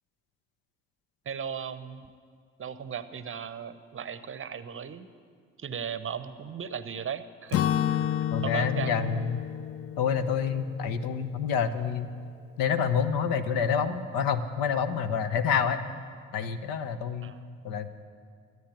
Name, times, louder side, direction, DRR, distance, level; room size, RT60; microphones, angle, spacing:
voice 1, 1.3-2.1 2.6-5.1 5.6-7.6 7.9-8.1 8.4-9.0 17.2-17.4, right 7 dB, 35° right, 13 dB, 0.8 m, -37 dB
Acoustic guitar / Strum, 7.5-11.5, left 10 dB, 40° left, 0.4 m, -31 dB
voice 2, 8.3-9.4 10.0-12.1 12.6-15.8 16.3-17.3 17.6-17.9, left 6 dB, 60° left, 10 dB, 1.0 m, -28 dB
13.0 x 9.2 x 10.0 m, 2.1 s
figure-of-eight pair, 50°, 38 cm